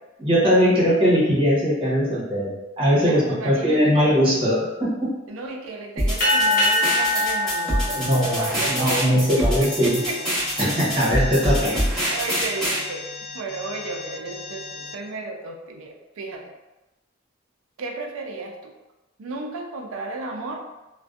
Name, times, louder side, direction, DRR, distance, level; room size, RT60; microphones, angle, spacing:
voice 1, 0.2-5.1 7.9-10.0 10.6-11.7, equal, 25° right, -8 dB, 0.9 m, -20 dB
voice 2, 3.0-4.2 5.3-8.8 9.1-10.2 11.6-13.1 13.3-16.5 17.8-18.7 19.2-20.6, right 3 dB, 90° right, 3 dB, 0.4 m, -33 dB
sound 1, 6.0-12.8, equal, 5° left, 0.9 m, -25 dB
sound 2, 6.2-9.1, left 1 dB, 45° left, 0.8 m, -23 dB
Alarm, 9.6-15.0, left 4 dB, 75° left, 0.4 m, -38 dB
2.5 x 2.1 x 2.3 m, 1.0 s
head